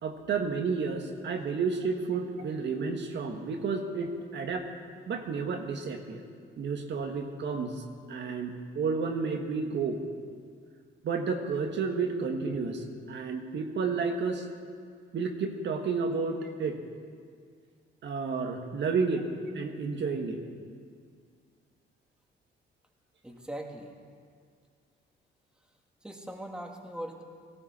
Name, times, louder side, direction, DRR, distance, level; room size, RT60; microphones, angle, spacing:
voice 1, 0.0-4.7 5.1-6.2 6.6-7.8 8.1-10.0 11.0-14.4 15.1-16.8 18.0-19.3 19.5-20.4, right 4 dB, 65° right, 3 dB, 1.5 m, -31 dB
voice 2, 23.2-23.9 26.0-27.2, right 1 dB, 5° right, 1 dB, 1.9 m, -40 dB
18.0 x 15.0 x 4.3 m, 2.1 s
cardioid pair, 90°, 20 cm